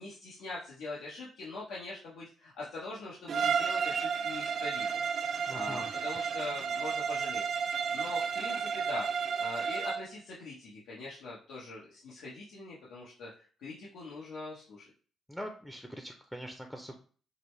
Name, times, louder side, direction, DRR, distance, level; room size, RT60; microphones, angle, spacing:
voice 1, 0.0-5.0 5.3-7.4 7.9-14.9, left 2 dB, 80° left, -6 dB, 1.1 m, -43 dB
Bowed string instrument, 3.3-10.1, right 6 dB, 60° right, 0.5 m, -32 dB
voice 2, 5.4-6.0 15.3-17.0, equal, 5° left, 4 dB, 0.6 m, -43 dB
5.2 x 2.1 x 3.2 m, 0.41 s
cardioid pair, 90°, 0 cm